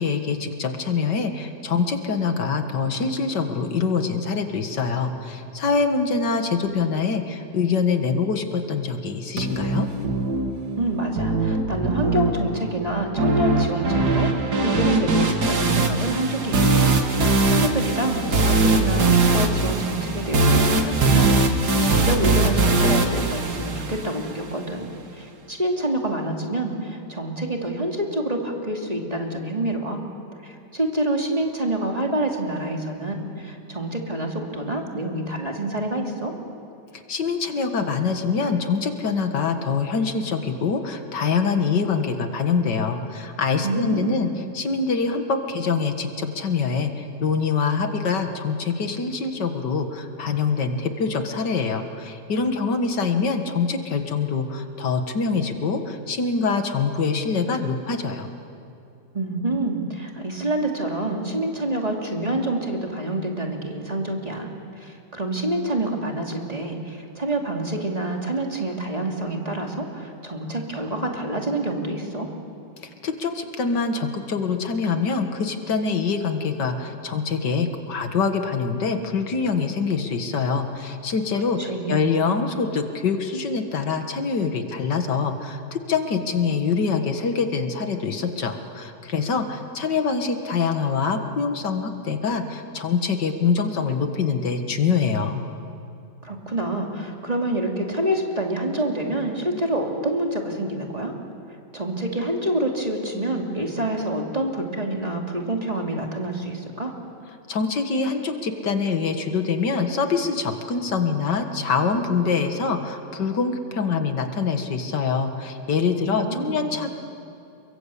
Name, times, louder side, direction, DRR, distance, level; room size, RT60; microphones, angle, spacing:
voice 1, 0.0-9.9 37.1-44.3 44.5-58.3 73.0-95.4 107.5-116.9, left 5 dB, 90° left, 6 dB, 2.3 m, -24 dB
sound 1, 9.4-24.4, right 2 dB, 70° right, 2.5 m, -21 dB
voice 2, 10.8-30.0 30.4-36.3 43.6-44.3 59.1-72.3 81.6-82.1 96.2-101.1 101.7-107.0 116.0-116.7, right 1 dB, 20° right, 1 dB, 2.8 m, -27 dB
29.0 x 22.5 x 8.5 m, 2.6 s
omnidirectional pair, 1.8 m